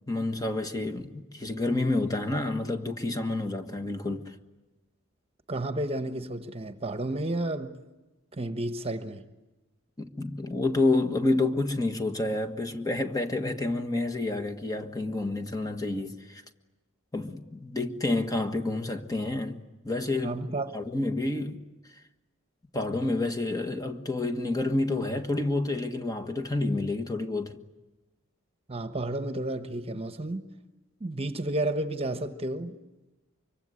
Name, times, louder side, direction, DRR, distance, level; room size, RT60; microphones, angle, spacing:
voice 1, 0.1-4.3 10.0-16.4 17.1-19.6 19.8-21.6 22.7-27.5, left 2 dB, 15° left, 1.5 m, -29 dB
voice 2, 5.5-7.8 8.3-9.2 20.2-20.7 28.7-30.4 31.0-32.8, right 1 dB, 30° right, 1.2 m, -31 dB
24.5 x 24.5 x 9.8 m
head